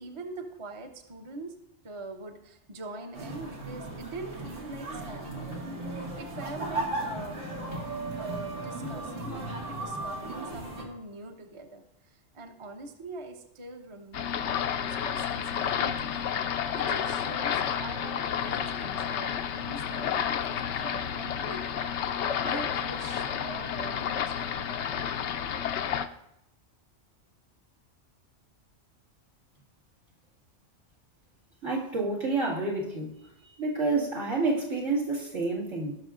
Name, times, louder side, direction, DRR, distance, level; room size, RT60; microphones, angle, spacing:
voice 1, 0.0-1.6 1.8-7.4 8.2-20.1 20.4-25.8, right 2 dB, 30° right, 4 dB, 0.8 m, -43 dB
sound 1, 3.1-10.8, right 2 dB, 85° right, 2.3 m, -36 dB
sound 2, 14.1-26.1, left 8 dB, 75° left, 0.9 m, -31 dB
voice 2, 31.6-33.2 33.6-36.0, right 3 dB, 70° right, -6 dB, 2.4 m, -29 dB
17.5 x 6.1 x 2.5 m, 0.85 s
omnidirectional pair, 1.2 m